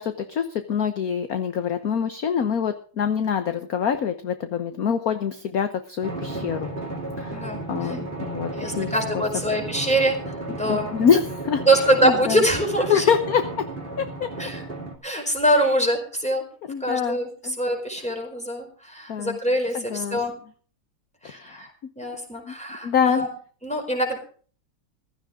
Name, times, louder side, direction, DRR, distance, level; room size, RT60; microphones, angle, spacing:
voice 1, 0.0-6.7 7.2-7.4 7.7-8.5 8.8-9.2 10.7-11.6 12.0-12.4 12.9-13.7 14.0-14.3 16.7-17.6 19.1-19.4 19.7-20.2 21.2-21.7 22.4-22.5 22.8-23.2, left 7 dB, 50° left, 9 dB, 1.3 m, -25 dB
Drum, 6.0-15.0, right 2 dB, 25° right, 3.0 m, -33 dB
voice 2, 7.3-8.0 8.5-10.9 11.6-13.0 14.4-14.6 15.0-16.4 16.8-20.3 21.2-21.7 22.0-23.3 23.6-24.2, right 1 dB, 5° left, 2 dB, 4.5 m, -24 dB
16.0 x 14.0 x 3.8 m, 0.43 s
omnidirectional pair, 2.4 m